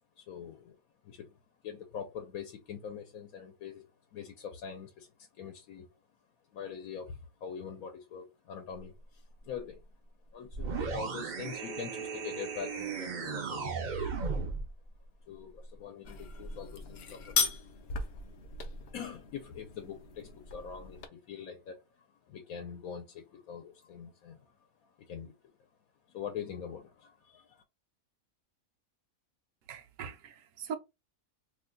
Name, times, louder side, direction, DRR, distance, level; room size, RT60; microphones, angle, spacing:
voice 1, 0.2-0.8 1.0-1.4 1.6-5.9 6.5-9.9 10.3-13.8 15.3-17.5 18.9-25.4 26.1-27.6, left 7 dB, 80° left, 1.1 m, -44 dB
sound 1, 10.5-14.7, right 5 dB, 55° right, 0.5 m, -36 dB
sound 2, 16.0-21.1, left 5 dB, 60° left, 0.7 m, -37 dB
voice 2, 29.7-30.8, right 7 dB, 70° right, 0.9 m, -41 dB
2.8 x 2.2 x 3.7 m
omnidirectional pair, 1.5 m